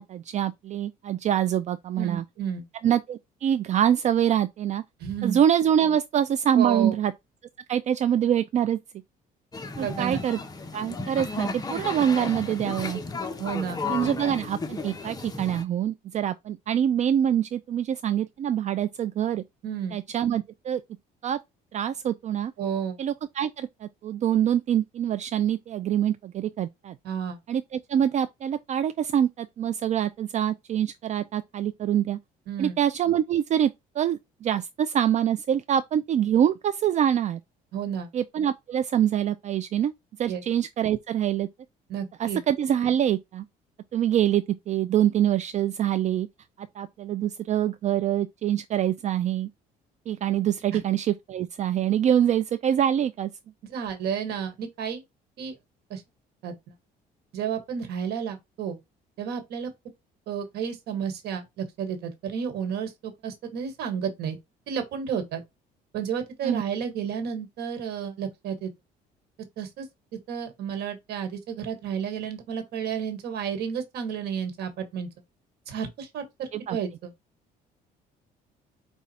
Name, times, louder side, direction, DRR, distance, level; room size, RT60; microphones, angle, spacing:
voice 1, 0.0-2.2 2.8-4.8 5.2-7.1 7.7-8.8 9.8-10.4 10.7-13.0 13.9-19.4 19.9-20.8 21.2-21.4 21.7-22.5 23.0-27.0 27.5-32.2 32.6-33.7 34.0-37.4 38.1-39.9 40.2-41.5 42.2-43.5 43.9-46.3 46.6-49.5 50.1-53.3 66.4-66.6 76.5-76.8, right 10 dB, 45° right, 0.4 m, -25 dB
voice 2, 2.0-2.7 5.0-5.4 6.5-7.0 9.8-10.2 13.4-13.8 19.6-20.0 22.6-23.0 27.0-27.4 32.5-32.8 37.7-38.1 40.3-40.4 41.9-42.4 50.7-50.8 53.6-55.0 55.4-55.6 55.9-56.0 56.4-56.5 57.3-58.8 59.2-59.7 60.3-64.4 64.7-65.4 65.9-68.7 69.6-69.9 70.1-75.1 75.7-77.1, right 7 dB, 75° right, 1.4 m, -31 dB
sound 1, 9.5-15.6, left 3 dB, 20° left, 0.8 m, -34 dB
5.1 x 2.4 x 4.2 m
cardioid pair, 110°, 17 cm